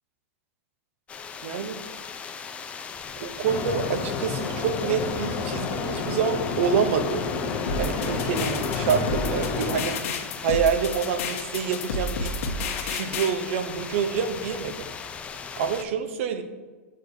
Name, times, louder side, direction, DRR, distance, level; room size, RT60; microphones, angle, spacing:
sound 1, 1.1-15.8, left 6 dB, 15° left, 0.4 m, -38 dB
voice 1, 1.4-1.8 3.2-7.2 7.8-10.0 10.4-12.3 12.8-14.7 15.6-16.4, right 6 dB, 60° right, 9 dB, 0.7 m, -27 dB
sound 2, 3.4-9.8, left 4 dB, 35° left, 0.9 m, -30 dB
sound 3, 7.7-13.3, left 3 dB, 60° left, 0.9 m, -31 dB
6.6 x 6.5 x 2.7 m, 1.3 s
hypercardioid pair, 140°, 8 cm